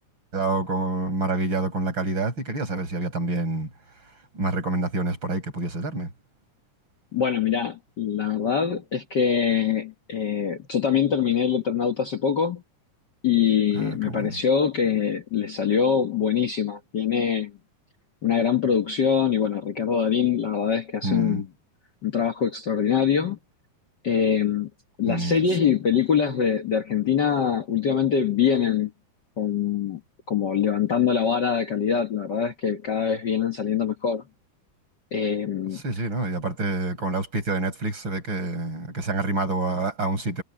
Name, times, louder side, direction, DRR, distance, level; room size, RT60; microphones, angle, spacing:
voice 1, 0.3-3.7 4.3-6.1 13.7-14.3 21.0-21.4 25.1-25.4 35.7-40.4, right 2 dB, 35° right, 6.2 m, -27 dB
voice 2, 7.1-12.6 13.2-17.5 18.2-21.5 22.0-23.4 24.0-24.7 25.0-28.9 29.4-30.0 30.3-34.2 35.1-35.8, left 7 dB, 60° left, 1.1 m, -23 dB
omnidirectional pair, 3.9 m